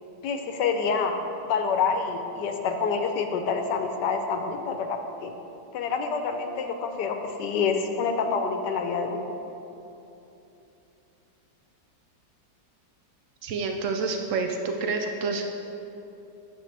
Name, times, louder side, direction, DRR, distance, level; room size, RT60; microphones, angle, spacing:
voice 1, 0.2-1.1 1.4-5.3 5.7-9.3, left 5 dB, 75° left, 5 dB, 1.2 m, -27 dB
voice 2, 13.4-15.4, right 4 dB, 90° right, 3 dB, 0.6 m, -28 dB
10.0 x 7.2 x 3.3 m, 2.9 s
omnidirectional pair, 2.0 m